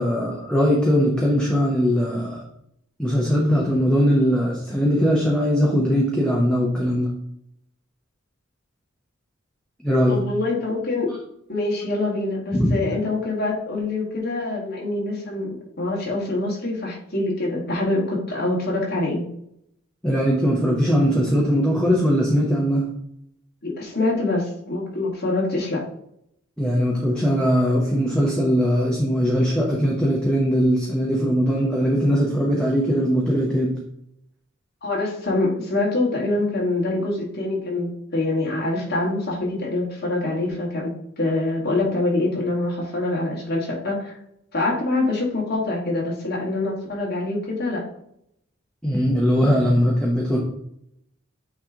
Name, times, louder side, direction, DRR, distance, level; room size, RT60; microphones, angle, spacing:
voice 1, 0.0-2.4 3.0-7.1 9.8-10.2 12.5-12.7 20.0-22.9 26.6-33.7 48.8-50.4, equal, 5° left, -3 dB, 0.9 m, -20 dB
voice 2, 10.1-11.1 11.5-19.2 23.6-25.8 34.8-44.2 44.5-47.8, left 2 dB, 50° left, -3 dB, 2.1 m, -25 dB
8.8 x 3.3 x 3.7 m, 0.76 s
head